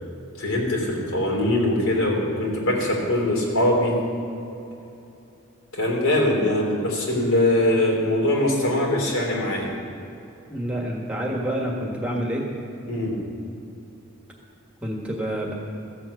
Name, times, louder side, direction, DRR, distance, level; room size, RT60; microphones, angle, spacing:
voice 1, 0.4-3.9 5.7-9.7 12.9-13.2, left 1 dB, 80° left, -2 dB, 3.3 m, -22 dB
voice 2, 10.5-12.4 14.8-15.5, equal, 5° right, -1 dB, 1.5 m, -28 dB
14.5 x 7.7 x 8.2 m, 2.8 s
head